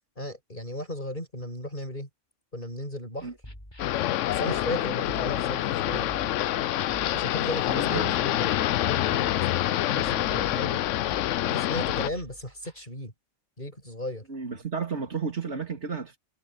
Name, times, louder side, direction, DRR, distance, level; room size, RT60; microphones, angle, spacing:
voice 1, 0.2-2.1 2.5-3.3 4.3-6.1 7.1-10.8 11.5-13.1 13.6-14.3, left 1 dB, 40° left, 8.0 m, -36 dB
sound 1, 3.2-12.8, equal, 20° left, 6.8 m, -46 dB
sound 2, 3.8-12.1, left 13 dB, 75° left, 0.9 m, -26 dB
voice 2, 7.7-8.2 14.3-16.2, right 5 dB, 60° right, 2.9 m, -32 dB
omnidirectional pair, 1.3 m